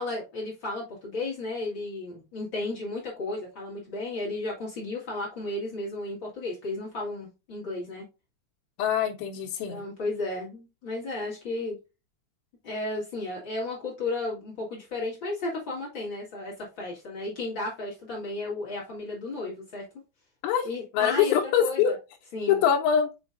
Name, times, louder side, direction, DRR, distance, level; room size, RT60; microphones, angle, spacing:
voice 1, 0.0-8.0 9.7-11.8 12.6-19.8 20.6-21.9 22.3-22.6, left 2 dB, 60° left, 1.2 m, -34 dB
voice 2, 8.8-9.9 20.4-20.7 20.9-21.9 22.5-23.1, left 8 dB, 80° left, 3.0 m, -24 dB
6.8 x 5.6 x 2.5 m
omnidirectional pair, 5.5 m